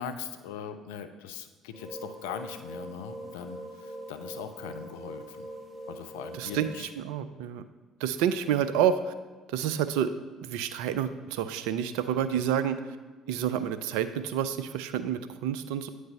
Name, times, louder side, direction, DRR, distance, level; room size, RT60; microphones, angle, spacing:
voice 1, 0.0-5.5 5.9-6.9, left 8 dB, 80° left, 8 dB, 0.5 m, -40 dB
sound 1, 1.7-6.8, right 1 dB, ahead, 1.4 m, -42 dB
voice 2, 6.3-7.7 8.0-9.1 9.5-10.1 10.4-13.0 13.3-15.9, right 9 dB, 75° right, 11 dB, 0.4 m, -29 dB
8.9 x 3.3 x 5.3 m, 1.4 s
hypercardioid pair, 55°, 0 cm